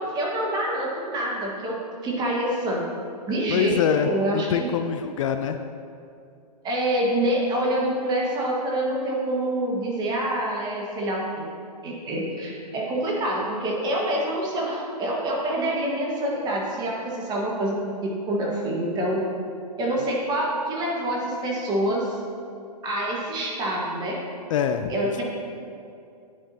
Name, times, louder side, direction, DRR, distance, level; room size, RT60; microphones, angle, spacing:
voice 1, 0.0-1.8 2.0-2.9 3.3-4.7 6.6-11.5 11.8-19.2 19.8-22.2 22.8-24.2 24.9-25.2, right 1 dB, 20° right, -3 dB, 1.5 m, -26 dB
voice 2, 3.5-5.6 20.0-20.1 24.5-25.1, left 8 dB, 50° left, 7 dB, 0.4 m, -25 dB
9.7 x 7.2 x 2.8 m, 2.5 s
hypercardioid pair, 135°, 21 cm